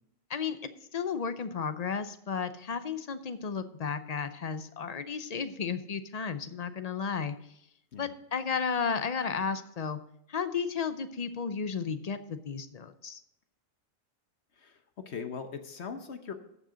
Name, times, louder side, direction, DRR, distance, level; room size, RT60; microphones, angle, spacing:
voice 1, 0.9-7.4 8.0-10.0 10.3-13.2, left 6 dB, 45° left, 10 dB, 0.6 m, -33 dB
voice 2, 14.6-16.3, left 6 dB, 60° left, 8 dB, 1.1 m, -40 dB
13.5 x 6.5 x 5.0 m, 0.78 s
omnidirectional pair, 1.4 m